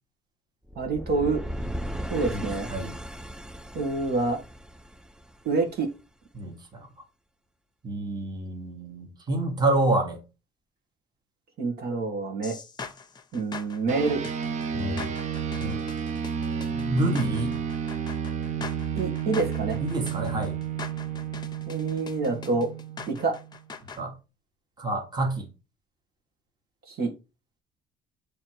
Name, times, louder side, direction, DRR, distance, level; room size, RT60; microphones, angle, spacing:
sound 1, 0.7-5.7, equal, 5° right, 0.4 m, -36 dB
voice 1, 0.7-1.4 2.1-2.7 3.7-4.4 5.4-5.9 11.6-12.6 13.3-14.2 18.9-19.8 21.7-22.7 23.1-23.4 26.9-27.1, right 3 dB, 65° right, 1.7 m, -27 dB
voice 2, 2.3-2.9 6.3-6.9 7.8-10.2 14.7-15.1 15.6-15.8 16.7-17.6 19.8-20.6 23.9-24.1 24.8-25.5, right 2 dB, 25° right, 1.6 m, -28 dB
sound 2, 12.4-24.0, left 5 dB, 25° left, 0.7 m, -42 dB
sound 3, 13.9-23.6, right 7 dB, 45° right, 0.8 m, -32 dB
7.4 x 3.2 x 4.7 m
cardioid pair, 110°, 17 cm